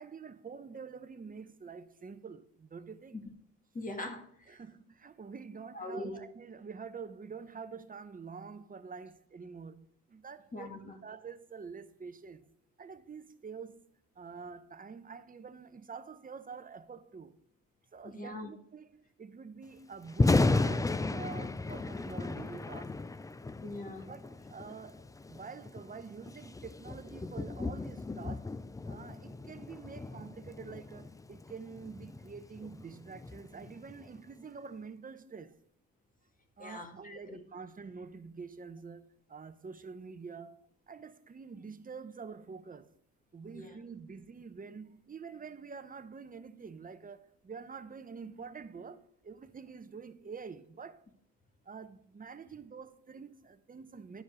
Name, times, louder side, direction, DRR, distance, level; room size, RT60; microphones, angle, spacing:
voice 1, 0.0-3.2 4.5-12.4 12.8-13.8 14.2-17.4 17.9-23.1 24.1-28.6 28.9-35.6 36.6-43.0 43.3-51.0 51.6-54.2, right 5 dB, 30° right, 0.8 m, -47 dB
voice 2, 3.7-4.6 5.7-6.3 10.5-11.0 18.0-18.5 23.6-24.1 36.6-37.4 43.5-43.7, left 1 dB, 25° left, 1.8 m, -42 dB
Thunder, 20.0-34.2, left 3 dB, 10° left, 0.4 m, -34 dB
11.0 x 5.2 x 5.0 m
cardioid pair, 90°, 30 cm